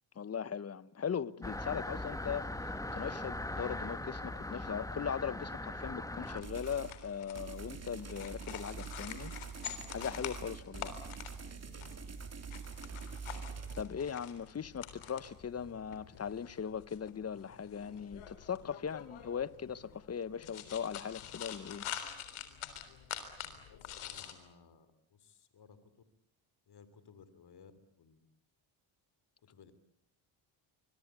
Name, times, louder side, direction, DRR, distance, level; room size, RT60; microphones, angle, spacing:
voice 1, 0.1-9.3 9.9-10.9 13.7-21.9, left 7 dB, 30° left, 1.0 m, -39 dB
sound 1, 1.4-6.4, left 1 dB, 5° left, 1.8 m, -40 dB
sound 2, 6.2-24.3, left 9 dB, 75° left, 3.8 m, -47 dB
sound 3, 6.4-7.0 7.3-13.8, right 5 dB, 30° right, 3.4 m, -45 dB
voice 2, 23.7-25.8 26.7-27.7 28.0-28.2 29.5-29.7, left 6 dB, 50° left, 3.2 m, -59 dB
25.0 x 23.5 x 8.3 m
cardioid pair, 85°, 50 cm